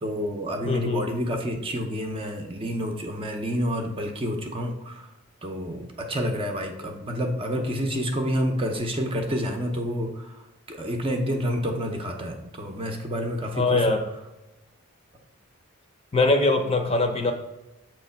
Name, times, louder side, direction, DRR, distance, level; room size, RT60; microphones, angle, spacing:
voice 1, 0.0-5.1 5.4-10.4 10.7-14.0, equal, 25° right, 3 dB, 0.7 m, -29 dB
voice 2, 0.7-1.0 13.5-14.0 16.1-17.3, left 2 dB, 25° left, 4 dB, 0.7 m, -22 dB
7.4 x 3.1 x 5.7 m, 0.99 s
head